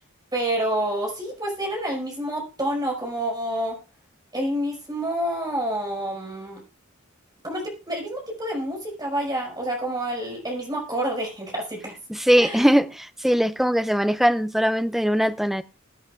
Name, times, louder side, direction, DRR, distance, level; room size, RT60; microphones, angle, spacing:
voice 1, 0.3-3.8 4.3-6.6 7.4-11.9 12.4-12.7, right 1 dB, 20° right, 5.3 m, -28 dB
voice 2, 12.1-15.6, equal, ahead, 0.4 m, -21 dB
21.5 x 8.1 x 2.4 m
head